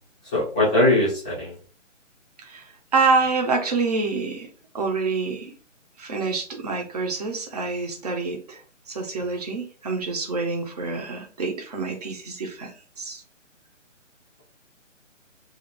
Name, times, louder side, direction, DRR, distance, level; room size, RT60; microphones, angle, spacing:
voice 1, 0.3-1.5, left 1 dB, 5° left, 0.6 m, -20 dB
voice 2, 2.4-4.5 4.7-5.5 6.0-8.6 8.9-13.2, right 4 dB, 30° right, 0.6 m, -27 dB
2.6 x 2.5 x 4.2 m
figure-of-eight pair, 150°, 38 cm